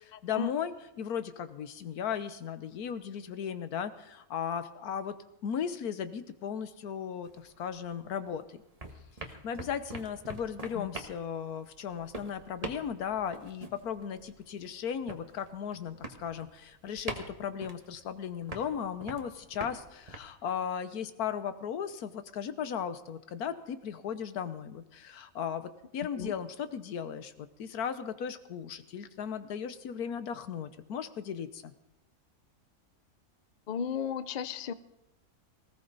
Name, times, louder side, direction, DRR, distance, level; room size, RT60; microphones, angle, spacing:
voice 1, 0.0-5.2 5.4-8.6 9.2-31.7, left 8 dB, 85° left, 12 dB, 1.4 m, -36 dB
sound 1, 7.2-8.4 8.6-20.2, right 2 dB, 25° right, 1.4 m, -44 dB
voice 2, 33.7-34.7, left 7 dB, 50° left, 13 dB, 0.6 m, -34 dB
19.0 x 17.0 x 4.0 m, 0.90 s
omnidirectional pair, 1.5 m